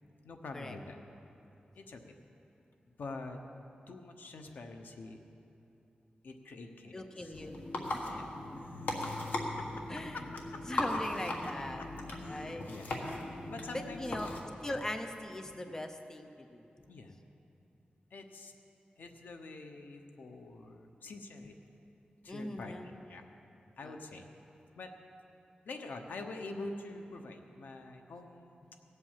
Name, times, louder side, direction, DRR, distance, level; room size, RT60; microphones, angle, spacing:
voice 1, 0.2-1.0 1.8-2.0 3.0-3.4 3.9-5.2 6.2-7.5 8.0-8.3 8.5-9.3 9.6-9.8 10.1-10.8 11.8-11.9 12.2-12.9 13.5-14.0 14.6-14.8 16.9-17.2 18.1-18.5 19.0-21.6 22.2-23.2 23.8-24.3 24.7-24.9 25.6-28.8, left 3 dB, 85° left, 5 dB, 1.0 m, -46 dB
voice 2, 6.9-7.6 9.9-10.2 10.7-11.8 12.3-12.7 12.9-13.4 14.0-14.3 14.6-16.6 22.3-22.9 23.8-23.9, left 1 dB, 20° left, 6 dB, 0.7 m, -40 dB
sound 1, 7.3-14.4, left 2 dB, 70° left, 1.6 m, -38 dB
17.5 x 8.1 x 7.4 m, 2.8 s
wide cardioid pair, 165°, 3 cm